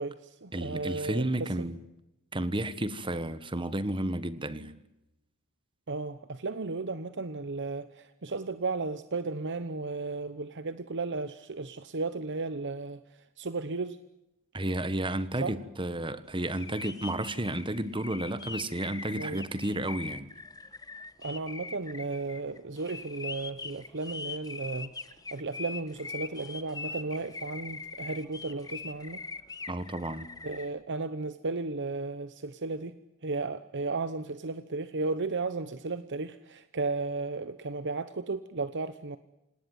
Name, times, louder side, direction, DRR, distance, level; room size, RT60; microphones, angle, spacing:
voice 1, 0.0-1.2 5.9-13.0 13.4-14.0 15.4-15.5 19.2-19.4 21.2-24.9 25.3-29.2 30.4-32.9 33.2-39.2, right 3 dB, 55° right, 12 dB, 1.0 m, -34 dB
voice 2, 0.5-1.8 2.3-4.8 14.5-20.3 29.7-30.3, right 1 dB, 20° right, 13 dB, 1.4 m, -32 dB
sound 1, 16.4-30.7, left 4 dB, 15° left, 1.2 m, -42 dB
27.0 x 19.0 x 9.4 m, 0.92 s
head